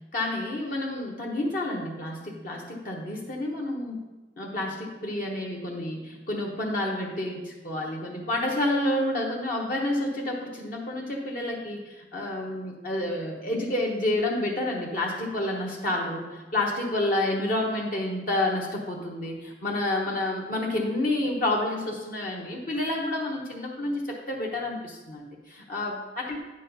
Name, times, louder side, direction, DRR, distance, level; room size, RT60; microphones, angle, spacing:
voice 1, 0.1-4.0 4.4-26.4, left 1 dB, 50° left, -2 dB, 1.0 m, -29 dB
9.4 x 6.3 x 4.0 m, 1.2 s
head